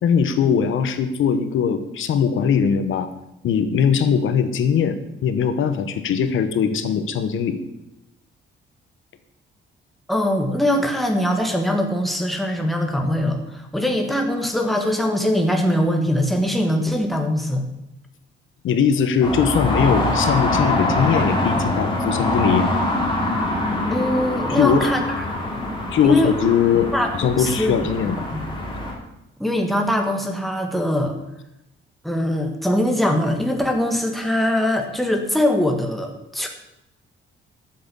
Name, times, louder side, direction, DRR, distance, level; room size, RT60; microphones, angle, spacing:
voice 1, 0.0-3.1 3.4-7.6 18.6-22.7 24.5-24.9 25.9-28.2, left 7 dB, 70° left, 10 dB, 1.1 m, -20 dB
voice 2, 10.1-17.6 23.9-25.0 26.0-26.3 26.9-27.7 28.0-28.4 29.4-31.2 32.0-36.5, left 1 dB, ahead, 3 dB, 1.6 m, -22 dB
sound 1, 19.2-28.9, left 1 dB, 25° left, 3.7 m, -24 dB
13.0 x 7.8 x 7.0 m, 0.89 s
cardioid pair, 155°, 21 cm